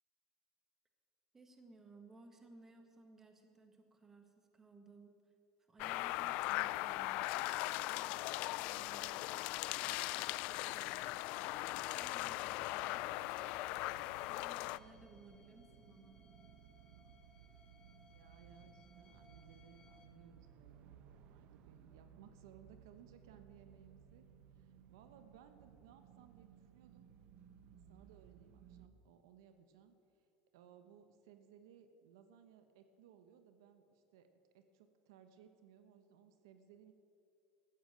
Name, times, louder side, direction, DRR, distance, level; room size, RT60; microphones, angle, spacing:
voice 1, 1.3-13.9 14.3-16.3, right 3 dB, 15° right, 5 dB, 1.7 m, -61 dB
sound 1, 5.8-14.8, left 19 dB, 65° left, 0.3 m, -39 dB
sound 2, 11.4-28.9, right 8 dB, 55° right, 0.8 m, -61 dB
sound 3, 12.4-20.1, left 3 dB, 30° left, 1.6 m, -69 dB
voice 2, 18.1-24.3 24.5-27.0 27.9-29.9 30.5-34.3 34.5-36.9, right 8 dB, 90° right, 9 dB, 1.0 m, -62 dB
14.0 x 8.9 x 7.6 m, 2.6 s
supercardioid pair, 130°, 2 cm